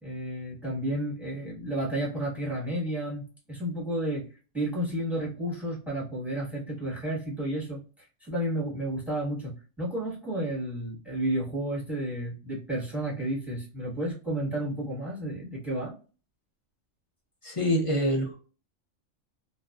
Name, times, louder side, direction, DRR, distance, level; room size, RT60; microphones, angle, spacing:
voice 1, 0.0-4.3 4.5-15.9, right 1 dB, ahead, -4 dB, 1.0 m, -32 dB
voice 2, 17.4-18.4, equal, 40° left, 0 dB, 0.4 m, -26 dB
2.5 x 2.2 x 2.2 m, 0.36 s
omnidirectional pair, 1.4 m